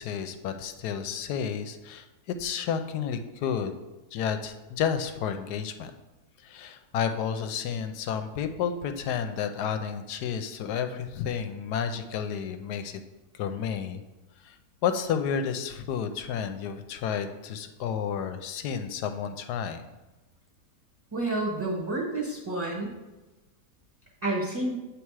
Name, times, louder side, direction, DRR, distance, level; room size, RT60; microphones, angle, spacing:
voice 1, 0.0-3.7 4.1-5.9 6.4-13.0 13.3-14.0 14.4-19.8, left 7 dB, 85° left, 8 dB, 1.2 m, -31 dB
voice 2, 21.1-22.9 24.2-24.7, right 2 dB, 15° right, -3 dB, 0.9 m, -29 dB
8.5 x 3.4 x 4.7 m, 1.1 s
omnidirectional pair, 1.7 m